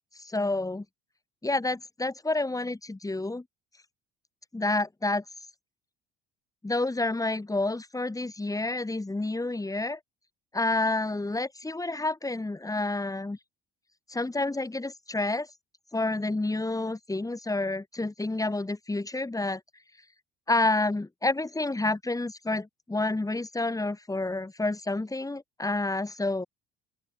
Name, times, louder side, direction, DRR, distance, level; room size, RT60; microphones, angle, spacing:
voice 1, 0.2-0.9 1.4-3.4 4.5-5.2 6.6-10.0 10.5-13.4 14.1-15.5 15.9-19.6 20.5-26.5, left 2 dB, 10° left, 3.5 m, -29 dB
open air
figure-of-eight pair, 55°, 31 cm